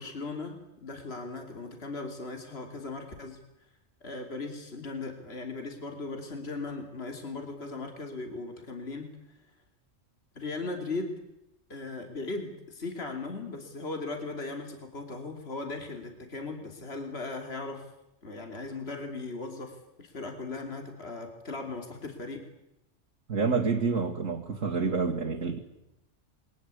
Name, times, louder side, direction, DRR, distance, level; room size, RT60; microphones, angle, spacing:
voice 1, 0.0-3.4 4.0-9.1 10.3-11.2 11.7-17.9 18.2-22.4, left 3 dB, 50° left, 3.3 m, -38 dB
voice 2, 23.3-25.6, right 4 dB, 85° right, 2.5 m, -28 dB
28.5 x 22.0 x 8.4 m
omnidirectional pair, 1.3 m